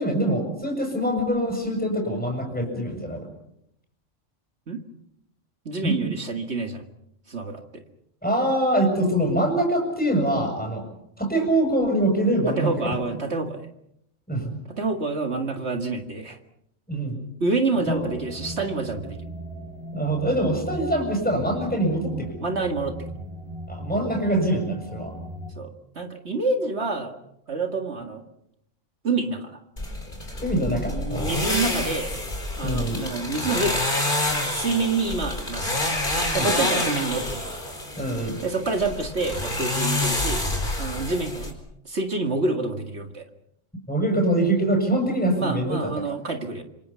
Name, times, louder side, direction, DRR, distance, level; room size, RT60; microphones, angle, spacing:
voice 1, 0.0-3.3 5.8-6.0 8.2-10.9 11.2-12.9 14.3-14.5 16.9-17.2 17.9-18.1 19.9-22.4 23.7-25.1 30.4-31.3 32.6-33.0 36.4-36.5 38.0-38.4 43.9-45.8 46.1-46.2, right 1 dB, 5° left, 1 dB, 6.9 m, -24 dB
voice 2, 5.7-6.8 7.3-7.8 12.5-13.7 14.7-16.4 17.4-19.2 22.4-23.0 25.6-27.2 27.5-28.2 29.0-29.6 30.8-32.1 32.6-33.9 34.4-35.7 36.3-37.6 38.4-40.4 40.8-41.6 41.8-43.3 45.4-46.6, right 3 dB, 60° right, 4 dB, 2.3 m, -27 dB
sound 1, 17.8-25.5, equal, 20° right, 5.8 m, -38 dB
sound 2, 29.8-41.5, left 1 dB, 40° left, 4.6 m, -28 dB
27.0 x 26.0 x 5.7 m, 0.78 s
omnidirectional pair, 1.3 m